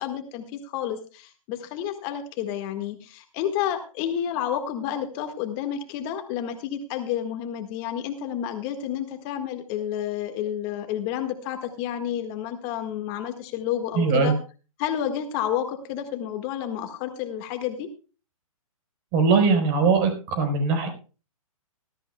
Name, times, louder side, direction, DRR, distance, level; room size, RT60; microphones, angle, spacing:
voice 1, 0.0-14.3 14.8-17.9, left 10 dB, 30° left, 6 dB, 1.7 m, -30 dB
voice 2, 13.9-14.3 19.1-20.9, right 5 dB, 35° right, 6 dB, 4.4 m, -21 dB
19.5 x 13.5 x 2.3 m, 0.35 s
hypercardioid pair, 130°, 18 cm